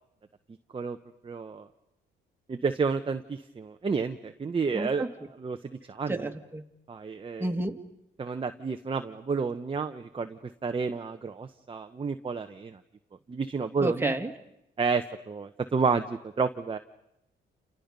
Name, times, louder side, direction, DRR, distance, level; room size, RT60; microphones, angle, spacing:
voice 1, 1.2-1.7 2.5-5.0 5.4-5.6 5.9-6.3 6.9-7.5 8.2-12.8 13.3-14.1 14.8-16.8, right 5 dB, 25° right, 7 dB, 1.0 m, -30 dB
voice 2, 4.7-5.1 6.1-6.6 7.4-7.8 13.8-14.3, right 2 dB, 10° right, 4 dB, 2.1 m, -30 dB
29.5 x 29.0 x 5.4 m, 0.82 s
cardioid pair, 90°, 20 cm